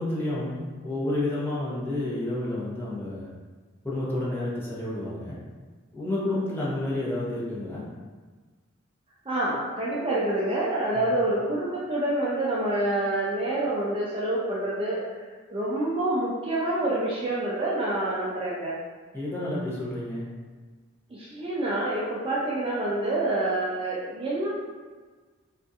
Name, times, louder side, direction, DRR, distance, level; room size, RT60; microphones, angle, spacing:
voice 1, 0.0-3.3 3.8-5.4 5.9-7.8 10.9-11.1 19.1-20.3, left 1 dB, 10° left, -8 dB, 0.7 m, -30 dB
voice 2, 9.3-15.2 15.5-18.8 21.1-24.5, right 1 dB, 25° right, -6 dB, 0.4 m, -27 dB
3.5 x 2.4 x 2.6 m, 1.4 s
head